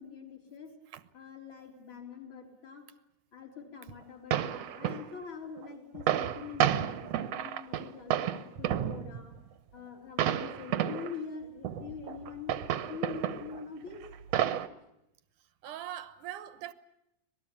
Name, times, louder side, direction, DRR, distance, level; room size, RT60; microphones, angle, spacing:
voice 1, 0.0-0.7 1.1-2.8 3.3-9.3 9.7-14.0, left 5 dB, 40° left, 4.4 m, -44 dB
sound 1, 3.9-4.0 4.3-5.1 5.6-5.7 5.9-9.4 10.2-11.1 11.6-13.6 14.0-14.7, right 11 dB, 65° right, 2.0 m, -31 dB
voice 2, 15.6-16.7, right 12 dB, 90° right, 2.7 m, -41 dB
25.5 x 19.0 x 8.5 m
omnidirectional pair, 3.5 m